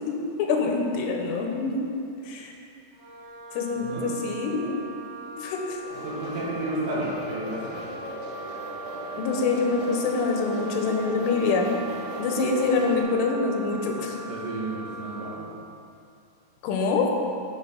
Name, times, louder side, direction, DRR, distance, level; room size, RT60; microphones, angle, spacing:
voice 1, 0.1-1.7 2.2-2.5 3.5-4.8 5.4-5.8 9.2-11.7 12.2-14.2 16.6-17.1, left 4 dB, 85° left, 2 dB, 3.2 m, -25 dB
Wind instrument woodwind instrument, 2.9-15.4, right 1 dB, 50° right, 2.1 m, -40 dB
voice 2, 3.8-4.1 6.0-7.9 14.3-15.5, right 2 dB, 70° right, -6 dB, 3.4 m, -32 dB
sound 1, 5.8-13.0, right 2 dB, 90° right, 3.6 m, -38 dB
9.7 x 4.0 x 5.0 m, 2.6 s
omnidirectional pair, 5.6 m